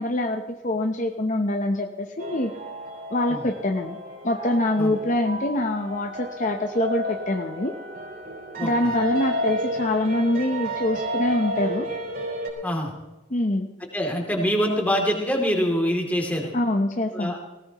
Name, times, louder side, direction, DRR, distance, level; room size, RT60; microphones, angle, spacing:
voice 1, 0.0-2.5 3.1-4.0 4.2-7.7 8.6-11.9 13.3-13.7 16.5-17.4, left 1 dB, 40° left, 4 dB, 0.8 m, -25 dB
sound 1, 2.2-12.5, equal, 55° right, 4.9 m, -31 dB
voice 2, 8.6-8.9 12.6-12.9 13.9-16.5 17.1-17.4, equal, 10° left, 0 dB, 2.9 m, -25 dB
19.5 x 17.5 x 3.0 m, 1.1 s
head